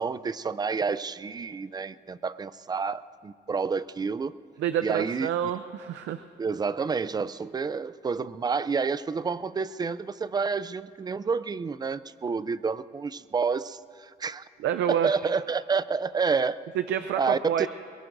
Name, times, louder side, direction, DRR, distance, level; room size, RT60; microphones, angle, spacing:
voice 1, 0.0-4.3 4.8-5.3 6.4-14.4 14.9-16.6 17.2-17.7, right 5 dB, 20° right, 16 dB, 0.4 m, -29 dB
voice 2, 4.6-6.2 14.6-15.1 16.7-17.7, right 10 dB, 90° right, 9 dB, 0.5 m, -28 dB
22.5 x 22.0 x 2.6 m, 2.3 s
cardioid pair, 115°, 18 cm